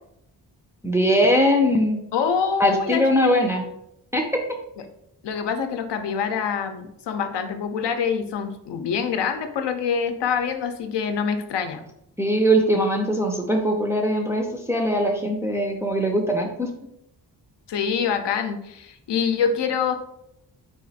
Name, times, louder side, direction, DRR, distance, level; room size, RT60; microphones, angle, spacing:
voice 1, 0.8-2.0 2.6-3.6 4.1-4.4 12.2-16.7, equal, 5° right, 1 dB, 0.4 m, -21 dB
voice 2, 2.1-3.2 5.2-11.8 17.7-20.0, left 6 dB, 80° left, 6 dB, 0.6 m, -25 dB
4.1 x 2.4 x 4.0 m, 0.78 s
wide cardioid pair, 160°, 41 cm